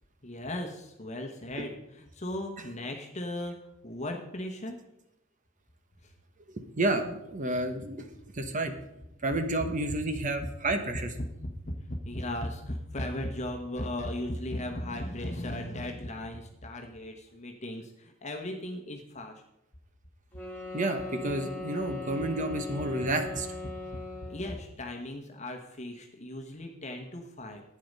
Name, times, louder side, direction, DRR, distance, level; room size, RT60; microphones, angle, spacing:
voice 1, 0.2-4.8 6.0-6.1 11.2-19.4 24.3-27.6, left 1 dB, 35° left, 3 dB, 1.1 m, -37 dB
voice 2, 6.5-8.1 8.3-8.7 9.2-11.1 20.7-23.5, right 2 dB, 40° right, 7 dB, 1.0 m, -30 dB
sound 1, 20.3-24.5, left 2 dB, 10° left, 2.6 m, -39 dB
11.5 x 8.6 x 5.3 m, 0.85 s
head